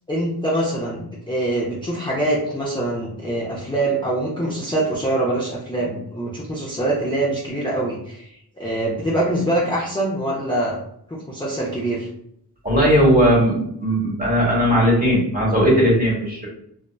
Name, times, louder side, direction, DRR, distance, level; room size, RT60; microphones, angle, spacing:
voice 1, 0.1-10.8 11.1-12.1, right 1 dB, 10° left, -6 dB, 0.5 m, -24 dB
voice 2, 12.6-16.5, equal, 20° right, -3 dB, 1.2 m, -17 dB
2.5 x 2.2 x 2.3 m, 0.71 s
cardioid pair, 55°, 41 cm